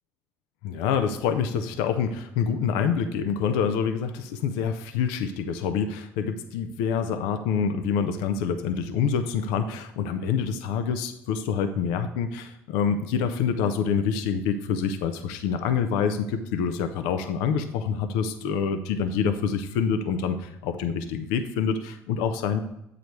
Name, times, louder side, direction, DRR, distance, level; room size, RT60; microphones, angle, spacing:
voice 1, 0.6-22.6, left 6 dB, 80° left, 8 dB, 0.6 m, -26 dB
8.2 x 4.9 x 4.6 m, 0.82 s
hypercardioid pair, 65°, 7 cm